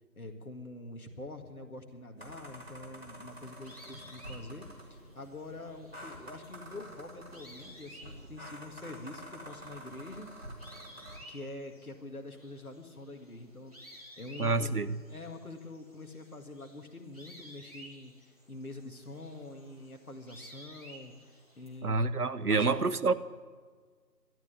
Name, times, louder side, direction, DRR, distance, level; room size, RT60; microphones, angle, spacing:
voice 1, 0.2-4.7 4.9-10.3 11.3-14.7 15.1-22.0 22.5-22.9, left 2 dB, 60° left, 4 dB, 2.0 m, -45 dB
sound 1, 2.2-11.2, right 1 dB, 40° right, 2.5 m, -48 dB
sound 2, 3.3-21.8, equal, 25° right, 1.6 m, -55 dB
voice 2, 14.4-14.9 21.8-23.1, right 3 dB, 65° right, 13 dB, 0.8 m, -27 dB
12.5 x 10.5 x 9.8 m, 1.5 s
figure-of-eight pair, 170°, 48 cm